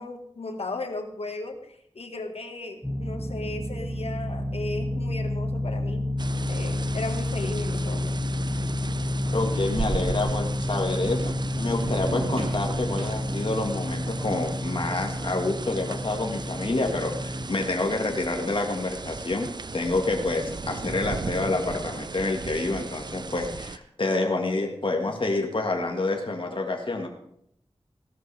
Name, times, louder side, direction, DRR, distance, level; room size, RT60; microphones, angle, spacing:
voice 1, 0.0-6.1 6.5-8.2, left 2 dB, 75° left, 5 dB, 1.7 m, -36 dB
sound 1, 2.8-17.5, left 1 dB, ahead, 2.0 m, -30 dB
sound 2, 6.1-13.9, right 1 dB, 70° right, 5.1 m, -42 dB
sound 3, 6.2-23.8, right 4 dB, 45° right, 0.4 m, -36 dB
voice 2, 9.3-27.1, left 2 dB, 55° left, 2 dB, 1.7 m, -28 dB
17.0 x 12.0 x 3.4 m, 0.72 s
wide cardioid pair, 75°, 10 cm